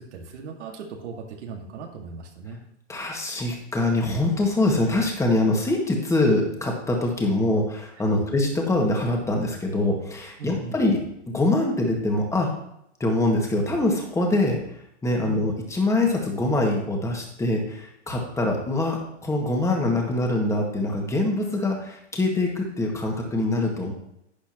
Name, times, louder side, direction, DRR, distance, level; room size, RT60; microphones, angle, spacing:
voice 1, 0.1-2.6 8.0-8.2 10.4-10.8 15.2-15.4, right 4 dB, 70° right, 1 dB, 2.0 m, -38 dB
voice 2, 2.9-12.5 13.0-14.6 15.0-23.9, left 2 dB, 10° left, 1 dB, 1.9 m, -24 dB
11.5 x 8.8 x 3.0 m, 0.75 s
hypercardioid pair, 135°, 36 cm